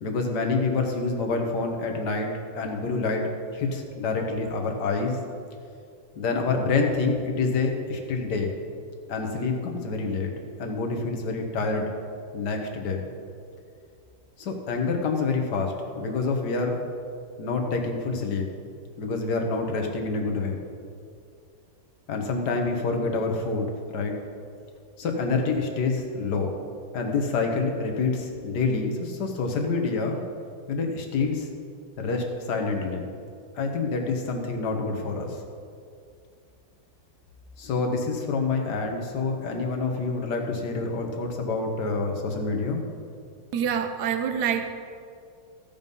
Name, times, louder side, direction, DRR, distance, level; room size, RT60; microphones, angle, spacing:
voice 1, 0.0-5.2 6.2-8.5 9.1-10.3 10.6-11.9 12.3-13.0 14.4-16.8 17.4-18.5 19.0-20.6 22.1-24.1 25.0-26.5 26.9-30.2 30.7-31.5 32.0-33.1 33.5-35.4 37.6-42.8, left 4 dB, 55° left, 3 dB, 1.7 m, -27 dB
voice 2, 43.5-44.7, right 8 dB, 65° right, 7 dB, 1.2 m, -26 dB
15.5 x 5.5 x 5.4 m, 2.4 s
omnidirectional pair, 2.2 m